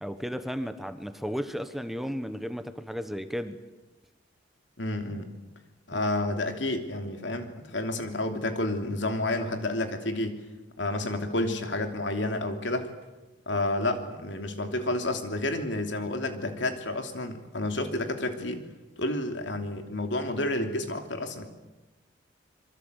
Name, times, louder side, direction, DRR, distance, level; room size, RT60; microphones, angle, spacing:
voice 1, 0.0-3.6 5.9-6.0, equal, ahead, 9 dB, 1.1 m, -34 dB
voice 2, 4.8-5.3 5.9-10.4 10.8-12.9 13.5-18.7 19.0-21.4, left 1 dB, 70° left, 6 dB, 3.0 m, -30 dB
26.5 x 23.5 x 8.2 m, 1.1 s
head